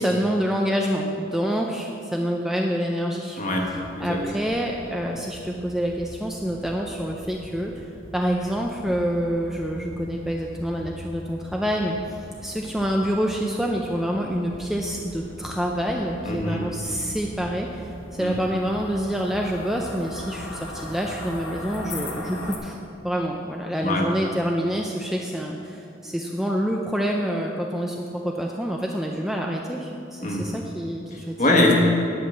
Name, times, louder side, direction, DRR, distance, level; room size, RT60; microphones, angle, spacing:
voice 1, 0.0-3.4 4.0-7.9 8.1-22.8 23.0-31.6, equal, ahead, 0 dB, 0.4 m, -27 dB
voice 2, 3.4-4.2 16.2-16.7 18.2-18.4 23.8-24.1 30.2-30.5 31.1-31.7, left 1 dB, 40° left, 0 dB, 1.5 m, -23 dB
sound 1, 3.6-22.6, left 1 dB, 80° left, 1.3 m, -41 dB
10.5 x 5.6 x 8.1 m, 2.6 s
head